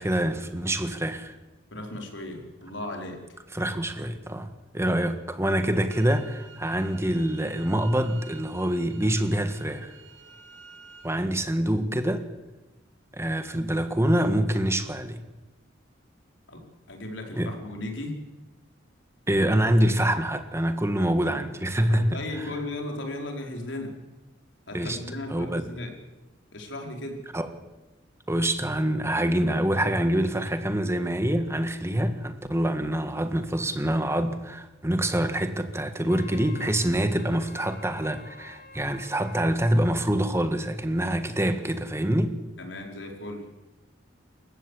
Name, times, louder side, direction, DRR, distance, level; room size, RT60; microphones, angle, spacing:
voice 1, 0.0-1.4 3.5-10.0 11.0-12.3 13.1-15.2 17.3-17.5 19.3-22.5 24.7-25.0 25.3-25.6 27.3-27.5 28.3-42.4, right 1 dB, 15° right, 8 dB, 1.6 m, -26 dB
voice 2, 1.7-3.2 4.8-5.0 16.5-18.1 21.9-23.9 24.7-25.9 26.5-27.2 42.6-43.4, left 1 dB, 75° left, 2 dB, 5.0 m, -36 dB
sound 1, 5.9-11.1, right 5 dB, 85° right, 2.4 m, -50 dB
Wind instrument woodwind instrument, 36.1-39.4, left 4 dB, 55° left, 1.9 m, -48 dB
28.5 x 15.5 x 8.5 m, 1.1 s
head